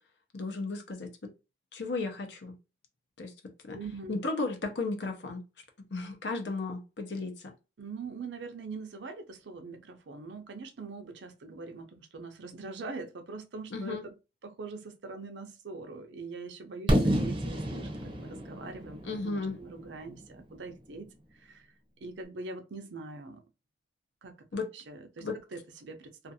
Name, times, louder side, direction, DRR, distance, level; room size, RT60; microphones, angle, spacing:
voice 1, 0.3-1.3 1.7-2.6 3.2-3.3 3.6-3.8 4.1-5.4 5.9-7.5 13.7-14.0 19.0-19.6 24.5-24.7 25.2-25.4, left 3 dB, 80° left, 0.7 m, -34 dB
voice 2, 3.7-4.1 7.8-14.1 14.4-21.7 22.0-23.4 24.2-24.4 24.7-26.3, right 3 dB, 90° right, 0.6 m, -43 dB
Fireworks, 16.9-20.7, equal, 30° right, 0.5 m, -30 dB
2.5 x 2.4 x 2.7 m
head